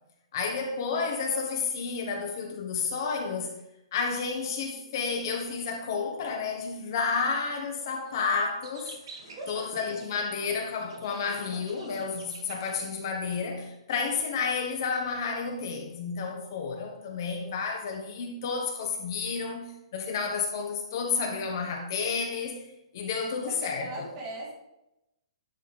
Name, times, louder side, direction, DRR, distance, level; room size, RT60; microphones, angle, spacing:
voice 1, 0.3-3.5 3.9-8.9 9.5-22.6 22.9-24.1, left 5 dB, 40° left, 1.1 m, -31 dB
sound 1, 8.1-8.2 8.6-12.8, right 3 dB, 60° right, 1.9 m, -48 dB
voice 2, 9.2-9.6 23.2-24.5, right 1 dB, 25° right, 2.2 m, -39 dB
11.0 x 4.2 x 3.8 m
hypercardioid pair, 170°, 3 cm